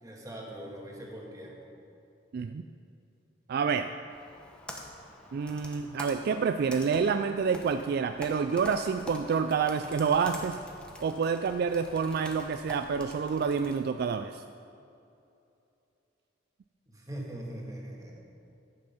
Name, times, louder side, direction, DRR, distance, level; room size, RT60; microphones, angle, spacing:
voice 1, 0.0-1.7 16.9-18.2, right 1 dB, 20° right, -2 dB, 1.7 m, -41 dB
voice 2, 2.3-2.6 3.5-3.9 5.3-10.6 11.0-14.4, right 6 dB, 55° right, 9 dB, 0.3 m, -28 dB
Computer keyboard, 4.1-13.8, left 1 dB, 5° left, 1.0 m, -46 dB
10.5 x 7.9 x 5.6 m, 2.6 s
head